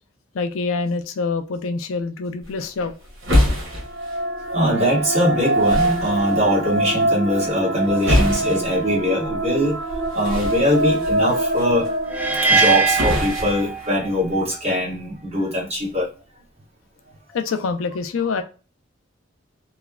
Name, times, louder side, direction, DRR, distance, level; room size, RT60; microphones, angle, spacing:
voice 1, 0.3-2.9 17.3-18.4, left 4 dB, 75° left, 0.4 m, -25 dB
sound 1, 2.4-14.4, left 1 dB, 70° right, 1.2 m, -27 dB
sound 2, 3.7-13.0, right 2 dB, 55° right, 0.9 m, -24 dB
voice 2, 4.5-9.8 10.1-11.9 12.4-16.1 17.6-17.7, left 1 dB, 30° right, 1.2 m, -22 dB
sound 3, 12.1-14.3, right 4 dB, 10° right, 0.3 m, -21 dB
3.1 x 2.0 x 2.3 m
head